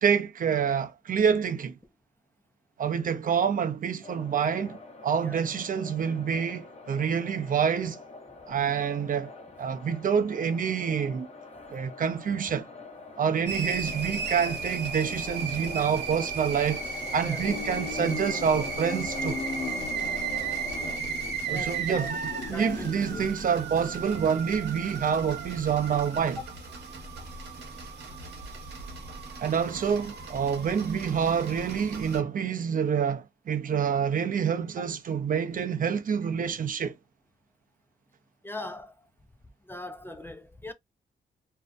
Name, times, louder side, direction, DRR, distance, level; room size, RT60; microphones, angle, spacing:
voice 1, 0.0-1.7 2.8-4.8 5.0-8.0 8.5-11.3 11.7-12.7 13.2-19.4 21.5-22.2 22.5-26.4 29.4-36.9, right 7 dB, 50° right, 0.5 m, -27 dB
sound 1, 4.0-21.0, left 3 dB, 40° left, 0.7 m, -44 dB
sound 2, 13.5-32.2, right 5 dB, 75° right, 0.9 m, -36 dB
sound 3, 17.4-23.3, left 5 dB, 80° left, 1.0 m, -38 dB
voice 2, 21.5-22.1 22.5-23.3 38.4-38.9 39.6-40.7, equal, 10° left, 0.4 m, -40 dB
2.6 x 2.1 x 2.3 m
cardioid pair, 80°, 18 cm